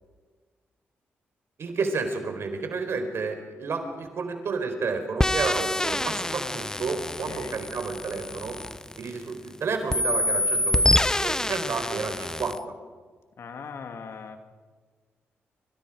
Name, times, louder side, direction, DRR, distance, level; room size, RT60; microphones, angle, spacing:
voice 1, 1.6-8.6 9.0-12.6, right 4 dB, 65° right, 6 dB, 4.6 m, -31 dB
sound 1, 5.2-9.5 9.9-12.6, left 1 dB, 15° left, 1.0 m, -26 dB
voice 2, 7.2-7.6 13.4-14.4, left 5 dB, 65° left, 6 dB, 2.7 m, -39 dB
27.0 x 25.5 x 5.1 m, 1.5 s
supercardioid pair, 60°, 5 cm